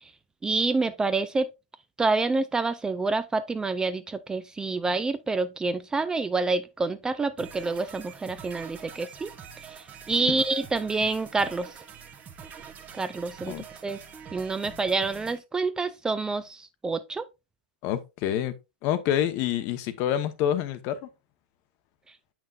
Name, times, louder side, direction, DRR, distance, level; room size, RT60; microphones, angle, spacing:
voice 1, 0.4-1.5 2.0-9.3 9.6-11.7 12.9-13.5 13.8-14.0 14.3-17.2, right 3 dB, 10° right, 0.4 m, -27 dB
sound 1, 7.4-15.4, right 7 dB, 30° right, 1.0 m, -45 dB
voice 2, 17.8-18.6 18.8-21.1, left 10 dB, 45° left, 0.9 m, -27 dB
7.2 x 5.9 x 2.4 m
hypercardioid pair, 115°, 6 cm